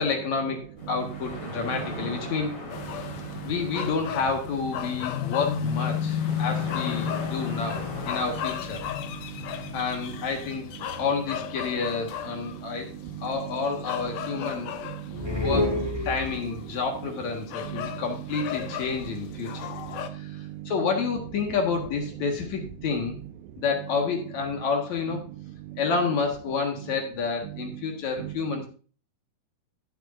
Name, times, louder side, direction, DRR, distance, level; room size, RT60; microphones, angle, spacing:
voice 1, 0.0-2.6 3.4-8.8 9.7-10.7 11.0-12.9 13.2-14.7 15.3-15.7 16.0-19.7 20.1-23.2 23.6-25.3 25.8-28.7, left 5 dB, 60° left, 2.8 m, -29 dB
sound 1, 0.8-8.5, left 1 dB, 35° left, 3.0 m, -40 dB
voice 2, 0.8-1.2 1.6-2.3 2.8-3.5 4.8-4.9 5.9-6.5 7.4-7.6 9.0-10.3 12.6-12.7 13.1-15.5 17.6-18.7 19.1-20.7 22.6-22.7 25.1-25.2 25.7-25.8 27.4-27.8 28.2-28.3, right 15 dB, 75° right, 1.9 m, -39 dB
sound 2, 2.7-20.1, left 10 dB, 75° left, 2.2 m, -34 dB
sound 3, 15.1-16.7, left 1 dB, 15° right, 0.9 m, -28 dB
16.0 x 6.8 x 2.6 m
omnidirectional pair, 4.0 m